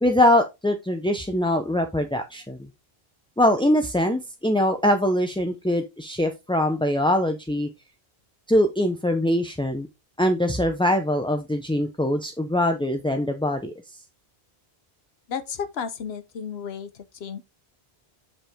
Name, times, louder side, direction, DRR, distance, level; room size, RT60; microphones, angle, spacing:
voice 1, 0.0-2.7 3.4-7.7 8.5-9.9 10.2-13.7, left 1 dB, 5° left, 0.5 m, -22 dB
voice 2, 15.3-17.4, left 7 dB, 80° left, 1.0 m, -33 dB
6.8 x 5.4 x 3.6 m
omnidirectional pair, 1.0 m